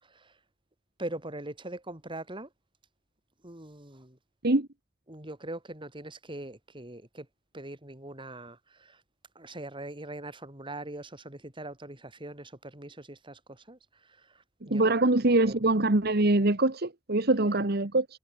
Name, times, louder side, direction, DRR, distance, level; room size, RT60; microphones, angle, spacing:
voice 1, 1.0-2.5 3.4-4.2 5.1-7.3 7.5-9.0 9.3-13.8 14.7-15.1 15.4-15.6, right 1 dB, 25° right, 4.4 m, -41 dB
voice 2, 14.7-18.1, right 2 dB, 55° right, 1.6 m, -24 dB
head